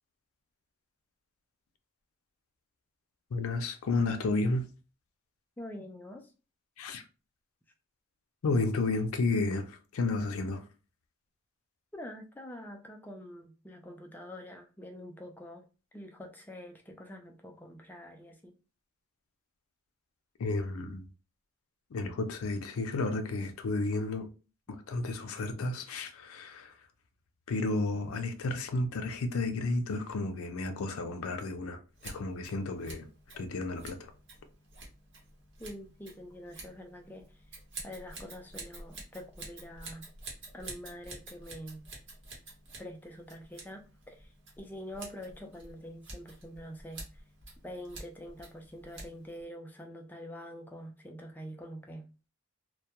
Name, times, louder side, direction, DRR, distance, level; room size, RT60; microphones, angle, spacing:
voice 1, 3.3-4.7 6.8-7.0 8.4-10.7 20.4-21.1 21.9-24.3 24.7-26.9 27.5-33.1 33.4-34.1, left 3 dB, 80° left, 0.4 m, -32 dB
voice 2, 5.6-6.2 11.9-15.7 15.9-18.5 35.6-37.3 37.8-40.1 40.5-41.8 42.8-43.8 44.1-44.3 44.6-47.0 47.6-52.1, equal, 10° left, 0.3 m, -45 dB
Scissors, 31.9-49.4, right 2 dB, 55° right, 1.0 m, -49 dB
2.2 x 2.1 x 2.8 m
head